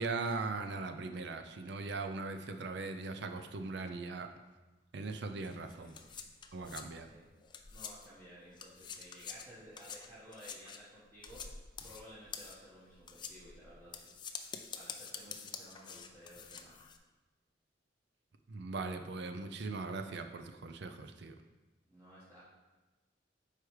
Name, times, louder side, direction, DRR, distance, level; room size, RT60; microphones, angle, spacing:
voice 1, 0.0-4.3 4.9-5.9 6.5-7.1 18.5-21.3, right 3 dB, 65° right, 7 dB, 0.5 m, -39 dB
sound 1, 5.4-8.2 8.5-17.0, left 6 dB, 25° left, 0.4 m, -47 dB
voice 2, 5.7-6.0 7.1-7.3 7.7-11.5 11.8-14.1 14.7-16.7 21.9-22.4, equal, 20° right, -12 dB, 1.3 m, -55 dB
4.8 x 4.8 x 4.7 m, 1.2 s
head